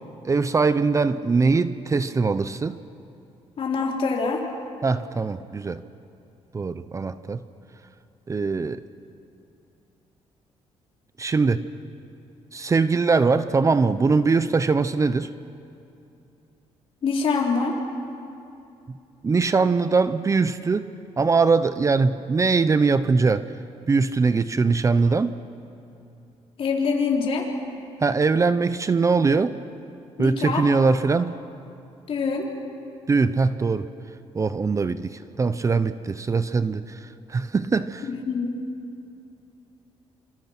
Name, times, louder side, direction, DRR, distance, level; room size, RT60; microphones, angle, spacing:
voice 1, 0.2-2.8 4.8-5.8 6.5-7.4 8.3-8.8 11.2-11.6 12.5-15.3 19.2-20.9 21.2-23.5 23.9-25.3 28.0-29.6 30.2-31.4 33.1-33.9 34.3-38.1, right 4 dB, 25° right, 13 dB, 0.7 m, -22 dB
voice 2, 3.6-4.4 17.0-17.7 26.6-27.5 30.2-30.6 32.1-32.5 38.1-38.5, left 5 dB, 55° left, -1 dB, 4.2 m, -24 dB
27.0 x 26.5 x 6.0 m, 2.7 s
cardioid pair, 115°, 12 cm